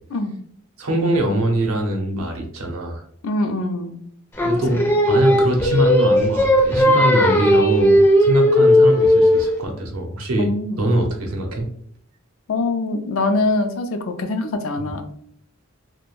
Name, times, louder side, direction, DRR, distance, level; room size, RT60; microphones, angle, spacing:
voice 1, 0.8-3.0 4.4-10.5 10.8-11.7 14.8-14.9, right 1 dB, 85° right, 3 dB, 0.7 m, -23 dB
voice 2, 3.2-4.0 4.7-4.8 10.4-10.8 12.5-15.0, left 2 dB, 70° left, 7 dB, 0.4 m, -23 dB
Singing, 4.4-9.6, left 1 dB, 10° left, 0.4 m, -16 dB
2.4 x 2.1 x 3.0 m, 0.63 s
head